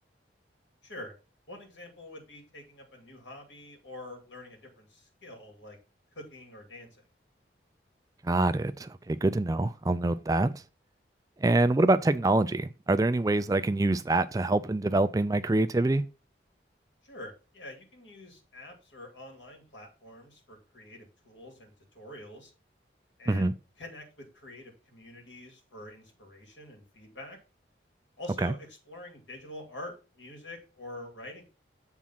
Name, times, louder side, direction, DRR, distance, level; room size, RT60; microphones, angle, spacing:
voice 1, 0.8-1.1 1.5-5.8 6.1-7.0 17.0-22.5 23.2-27.4 28.2-31.4, left 1 dB, 85° left, 2.6 m, -46 dB
voice 2, 8.2-10.6 11.4-16.0 23.3-23.5 28.4-28.5, right 2 dB, 20° right, 0.3 m, -25 dB
7.3 x 3.6 x 5.7 m
head